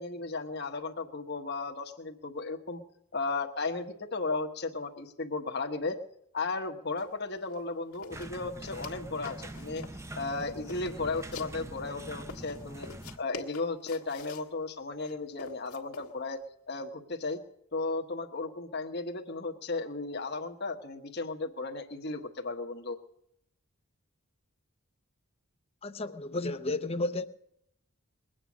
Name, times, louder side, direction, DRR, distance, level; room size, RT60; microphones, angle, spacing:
voice 1, 0.0-2.8 3.1-6.0 6.3-9.8 10.1-12.9 13.2-16.4 16.7-17.4 17.7-23.0, left 3 dB, 50° left, 1.2 m, -35 dB
sound 1, 7.0-7.1 7.4-7.6 7.9-9.0 9.3-10.0 10.4-11.8 12.3-14.5 15.0-16.1, left 5 dB, 85° left, 1.6 m, -47 dB
sound 2, 8.1-13.2, right 1 dB, 15° right, 0.5 m, -43 dB
voice 2, 25.8-27.3, left 2 dB, 25° left, 0.7 m, -32 dB
21.5 x 9.0 x 6.2 m
head